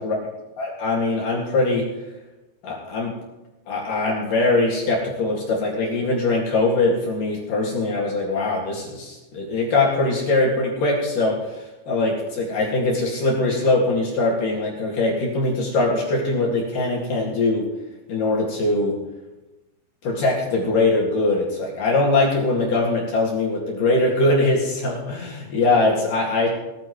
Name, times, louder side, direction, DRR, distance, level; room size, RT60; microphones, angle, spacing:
voice 1, 0.6-1.9 2.6-3.2 3.7-17.7 18.1-19.0 20.0-26.5, left 2 dB, 50° left, -3 dB, 3.2 m, -22 dB
19.5 x 14.0 x 3.2 m, 1.0 s
omnidirectional pair, 5.9 m